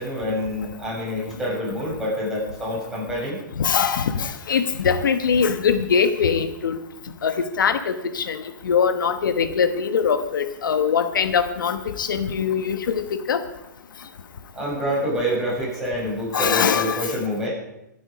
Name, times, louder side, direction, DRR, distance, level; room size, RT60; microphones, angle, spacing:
voice 1, 0.0-3.4 14.5-17.5, equal, 5° right, -7 dB, 6.6 m, -27 dB
voice 2, 3.6-6.8 7.2-13.4 16.3-17.1, left 6 dB, 85° left, 10 dB, 1.2 m, -22 dB
21.5 x 9.1 x 5.1 m, 0.86 s
hypercardioid pair, 155°, 10 cm